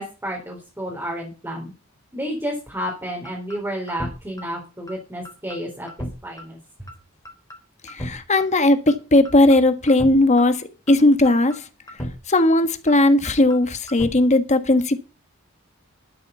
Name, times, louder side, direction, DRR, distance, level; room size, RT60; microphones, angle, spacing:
voice 1, 0.0-1.7 2.1-5.9 6.2-6.6, equal, 10° right, 3.6 m, -31 dB
sound 1, 2.9-3.0 3.3-3.6 3.9-4.1 4.4-4.5 4.9-5.0 5.3-5.6 5.9-6.1 6.4-6.5 6.9-7.0 7.3-7.6 7.9-8.1 8.4-8.5 8.9-9.0 9.3-9.6 9.9-10.1 10.4-10.5 10.9-11.0 11.3-11.6 11.9-12.1 12.4-12.5 12.9-13.0 13.3-13.6 13.9-14.1, equal, 15° left, 3.8 m, -33 dB
voice 2, 7.8-11.6 12.3-15.0, left 2 dB, 35° left, 1.4 m, -17 dB
12.5 x 7.6 x 6.9 m
head